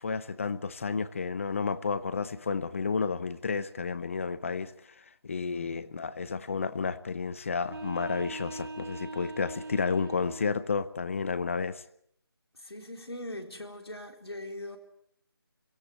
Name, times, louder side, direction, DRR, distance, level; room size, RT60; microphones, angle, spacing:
voice 1, 0.0-11.8, left 5 dB, 35° left, 0.9 m, -31 dB
voice 2, 5.5-6.0 12.6-14.8, left 1 dB, 80° left, 4.1 m, -41 dB
sound 1, 7.6-10.6, right 2 dB, 60° right, 3.7 m, -41 dB
24.0 x 16.5 x 8.2 m
figure-of-eight pair, 165°, 13 cm